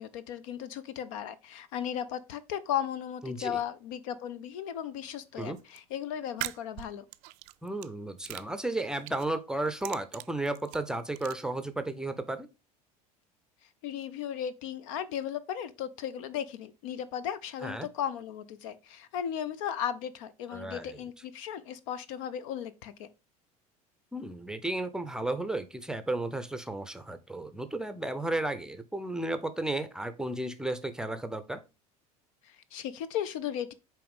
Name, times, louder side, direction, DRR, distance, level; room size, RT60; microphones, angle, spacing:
voice 1, 0.0-7.0 13.8-23.1 32.4-33.7, left 9 dB, 55° left, 0.6 m, -36 dB
voice 2, 3.2-3.6 5.4-5.6 7.6-12.5 17.6-17.9 20.5-21.0 24.1-31.6, right 2 dB, 5° right, 0.6 m, -33 dB
sound 1, 5.4-5.8 6.3-7.9 8.2-9.3 9.7-11.3, right 20 dB, 45° right, 0.4 m, -41 dB
8.4 x 3.1 x 3.6 m
figure-of-eight pair, 70°, 20 cm